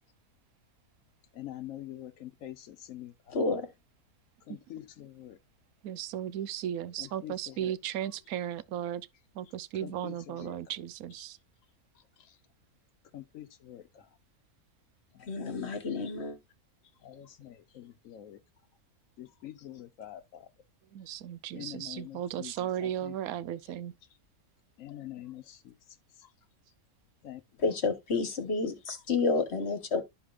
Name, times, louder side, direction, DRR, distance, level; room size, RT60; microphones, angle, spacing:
voice 1, 1.3-3.4 4.4-5.4 7.0-7.7 8.0-8.2 9.7-10.6 11.2-11.3 11.9-12.4 13.1-14.2 15.1-16.0 16.8-18.4 19.2-20.5 21.0-21.2 21.5-23.1 23.6-23.7 24.8-26.3 27.2-27.4, left 12 dB, 65° left, 1.0 m, -46 dB
voice 2, 3.3-3.7 15.2-16.4 27.6-30.0, left 4 dB, 50° left, 1.3 m, -30 dB
voice 3, 5.8-9.1 9.3-11.4 20.9-23.9, right 10 dB, 80° right, 1.1 m, -36 dB
13.0 x 5.0 x 2.4 m
omnidirectional pair, 1.6 m